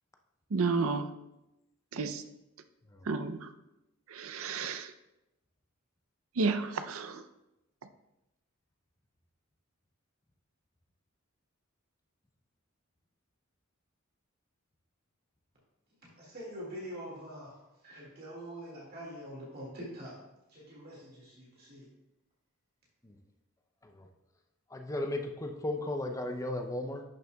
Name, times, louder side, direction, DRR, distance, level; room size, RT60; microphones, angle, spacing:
voice 1, 0.5-1.1 1.9-2.2 3.1-3.5 4.1-4.9 6.4-7.2, right 4 dB, 75° right, 10 dB, 0.5 m, -31 dB
voice 2, 16.0-20.2 20.5-21.9, equal, 45° right, -4 dB, 2.0 m, -45 dB
voice 3, 24.7-27.0, left 1 dB, 15° left, 4 dB, 0.5 m, -35 dB
10.5 x 6.6 x 2.3 m, 0.93 s
head